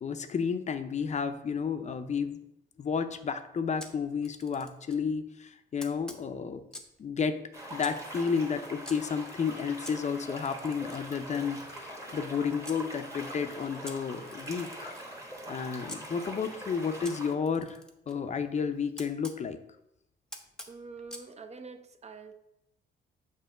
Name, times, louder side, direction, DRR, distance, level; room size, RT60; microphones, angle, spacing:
voice 1, 0.0-2.4 2.8-6.6 7.0-7.4 7.7-14.9 15.5-17.8 18.1-19.6, left 6 dB, 35° left, 9 dB, 0.5 m, -32 dB
Camera, 3.8-5.0 5.8-7.0 7.8-9.0 9.8-12.8 13.8-16.0 17.0-19.4 20.3-21.3, left 1 dB, 5° left, 0.7 m, -48 dB
sound 1, 7.5-17.3, right 1 dB, 15° right, 1.2 m, -43 dB
voice 2, 20.7-22.3, right 4 dB, 35° right, 8 dB, 0.6 m, -45 dB
6.9 x 2.8 x 4.9 m, 0.82 s
cardioid pair, 90°, 20 cm